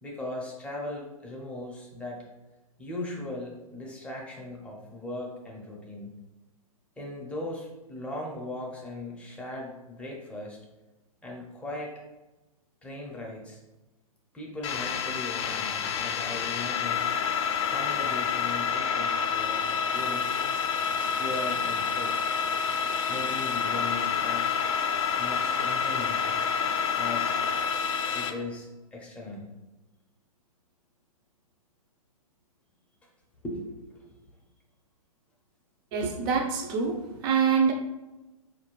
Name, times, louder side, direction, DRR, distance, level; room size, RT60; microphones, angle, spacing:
voice 1, 0.0-2.2 2.8-6.1 7.0-10.6 11.2-11.9 12.8-13.6 14.3-17.1 17.7-20.5 21.1-22.4 23.1-24.6 25.2-26.3 27.0-27.3 28.1-29.5 33.4-34.1, left 2 dB, 5° left, -3 dB, 0.6 m, -38 dB
sound 1, 14.6-28.3, left 6 dB, 55° left, 0.5 m, -28 dB
voice 2, 35.9-37.7, right 6 dB, 35° right, 2 dB, 0.6 m, -25 dB
4.1 x 2.6 x 3.0 m, 1.1 s
hypercardioid pair, 130°, 19 cm